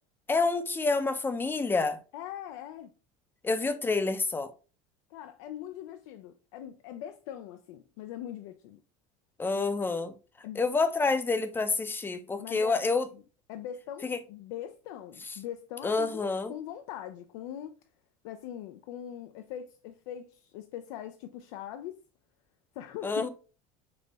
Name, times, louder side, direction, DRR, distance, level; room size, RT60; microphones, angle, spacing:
voice 1, 0.3-2.0 3.4-4.5 9.4-10.1 10.6-13.1 14.0-14.2 15.8-16.5 23.0-23.3, left 3 dB, 15° left, 0.5 m, -28 dB
voice 2, 2.1-2.9 5.1-8.8 10.4-10.6 12.4-12.9 13.5-17.8 18.2-22.0 22.8-23.2, left 10 dB, 85° left, 0.4 m, -41 dB
5.4 x 2.1 x 3.9 m
supercardioid pair, 130°, 16 cm